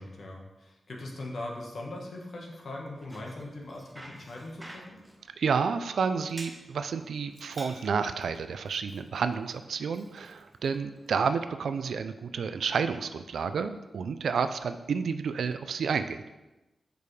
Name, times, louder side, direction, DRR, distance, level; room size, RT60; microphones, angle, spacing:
voice 1, 0.0-5.0, left 2 dB, 60° left, -1 dB, 1.3 m, -40 dB
Bicycle, 2.8-11.2, right 1 dB, 15° right, 0.7 m, -51 dB
voice 2, 5.4-16.2, right 6 dB, 85° right, 10 dB, 0.4 m, -30 dB
6.7 x 5.2 x 3.2 m, 1.1 s
wide cardioid pair, 125°, 0 cm